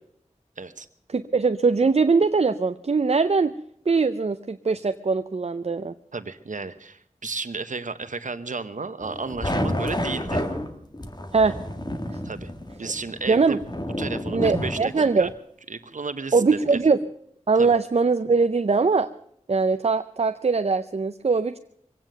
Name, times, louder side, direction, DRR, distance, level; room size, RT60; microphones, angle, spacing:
voice 1, 0.6-0.9 6.1-10.4 12.2-12.5 12.8-13.6 14.0-15.3 15.7-16.8 17.6-17.8, right 4 dB, 85° right, 10 dB, 1.0 m, -33 dB
voice 2, 1.1-3.5 3.9-5.9 11.3-11.6 12.1-12.2 12.8-12.9 13.3-13.6 14.3-15.3 16.3-17.0 17.5-19.1 19.5-21.6, right 4 dB, 55° right, 10 dB, 0.5 m, -21 dB
sound 1, 9.0-15.3, left 1 dB, 35° left, 1.7 m, -30 dB
23.0 x 9.1 x 6.6 m, 0.70 s
wide cardioid pair, 55°, 13 cm